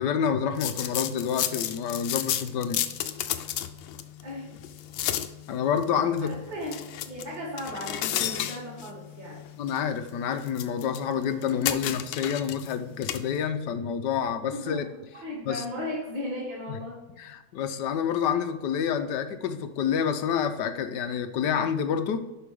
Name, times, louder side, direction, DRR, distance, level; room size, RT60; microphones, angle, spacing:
voice 1, 0.0-2.8 5.5-6.3 9.6-14.9 15.5-15.6 17.2-22.3, left 7 dB, 70° left, 9 dB, 1.2 m, -28 dB
sound 1, 0.5-13.4, left 11 dB, 85° left, 1.4 m, -34 dB
voice 2, 4.2-4.6 6.2-9.4 14.5-14.9 15.1-17.0, left 1 dB, 70° right, -8 dB, 3.3 m, -36 dB
11.5 x 5.2 x 3.5 m, 1.1 s
omnidirectional pair, 2.1 m